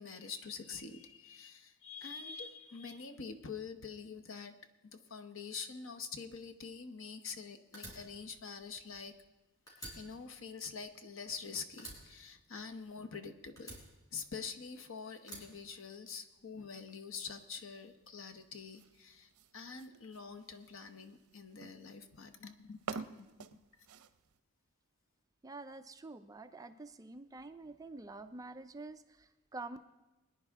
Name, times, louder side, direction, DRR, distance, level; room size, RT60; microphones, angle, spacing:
voice 1, 0.0-4.5 4.8-9.2 10.0-13.8 14.1-23.6, left 5 dB, 60° left, 7 dB, 1.0 m, -46 dB
Fire, 7.7-9.4 9.7-11.4 11.8-13.1 13.6-14.7 15.2-16.4, right 1 dB, 15° left, 4.2 m, -51 dB
sound 1, 16.7-24.4, right 5 dB, 85° right, 0.6 m, -51 dB
voice 2, 25.4-29.8, right 3 dB, 15° right, 9 dB, 0.4 m, -47 dB
22.5 x 10.0 x 3.6 m, 1.0 s
head